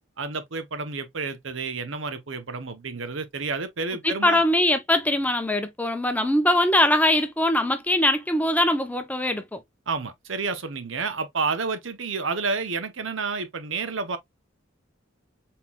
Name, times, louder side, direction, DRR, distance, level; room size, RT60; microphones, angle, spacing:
voice 1, 0.2-4.4 9.9-14.2, right 4 dB, 70° right, 0.9 m, -30 dB
voice 2, 4.0-9.6, left 1 dB, 10° left, 0.8 m, -22 dB
4.4 x 3.8 x 2.3 m
head